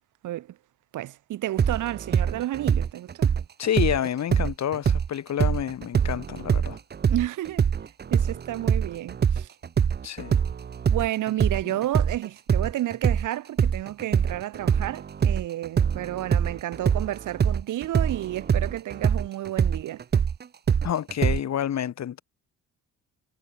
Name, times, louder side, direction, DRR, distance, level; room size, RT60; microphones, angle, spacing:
voice 1, 0.2-0.6 0.9-3.3 7.1-7.7 8.1-9.5 10.9-20.0, right 14 dB, 80° right, 3.3 m, -31 dB
sound 1, 1.6-5.1 5.4-13.3 13.6-21.4, right 7 dB, 35° right, 0.8 m, -24 dB
voice 2, 3.6-6.8 10.0-10.4 11.7-11.8 20.8-22.2, left 10 dB, 60° left, 4.0 m, -28 dB
cardioid pair, 90°, 30 cm